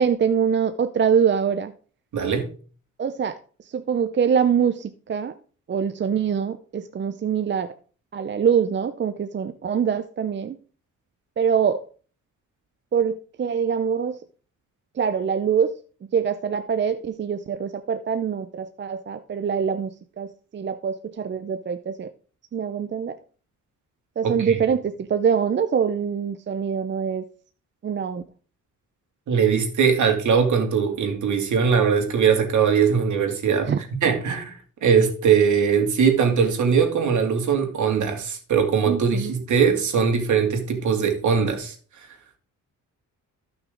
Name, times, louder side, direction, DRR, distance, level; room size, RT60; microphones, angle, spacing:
voice 1, 0.0-1.7 3.0-3.4 3.7-5.3 5.7-7.7 8.1-10.6 11.4-11.8 12.9-14.2 15.0-15.7 16.1-22.1 22.5-23.2 24.2-27.2 27.8-28.2 33.7-33.8 38.9-39.3, right 7 dB, 35° right, 9 dB, 0.6 m, -24 dB
voice 2, 2.1-2.5 24.2-24.6 29.3-33.7 34.0-34.5 34.8-41.7, right 6 dB, 65° right, 4 dB, 2.6 m, -21 dB
14.0 x 6.0 x 3.9 m, 0.41 s
cardioid pair, 110°, 32 cm